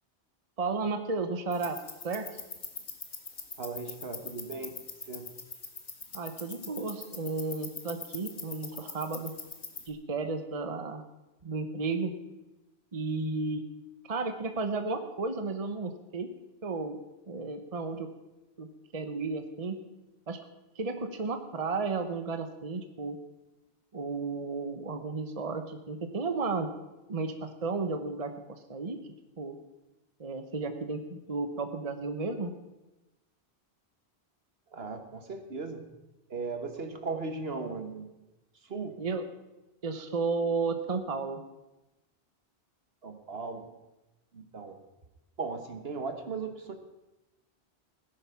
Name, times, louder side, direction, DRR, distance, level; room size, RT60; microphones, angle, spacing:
voice 1, 0.6-1.8 2.0-2.3 6.1-9.3 9.9-11.0 11.4-12.1 12.9-13.6 14.1-16.3 16.6-17.0 17.3-18.1 18.6-19.8 20.3-20.4 20.7-23.2 23.9-26.7 27.1-29.0 29.4-29.5 30.2-32.5 39.0-39.2 39.8-41.4, right 4 dB, 35° right, 7 dB, 1.0 m, -33 dB
sound 1, 1.5-9.9, left 4 dB, 85° left, 1.9 m, -43 dB
voice 2, 3.6-5.3 34.7-35.8 36.3-38.1 38.6-39.0 43.0-43.8 44.3-44.8 45.4-46.7, right 4 dB, 65° right, 7 dB, 1.7 m, -37 dB
17.5 x 10.5 x 5.8 m, 1.0 s
omnidirectional pair, 1.1 m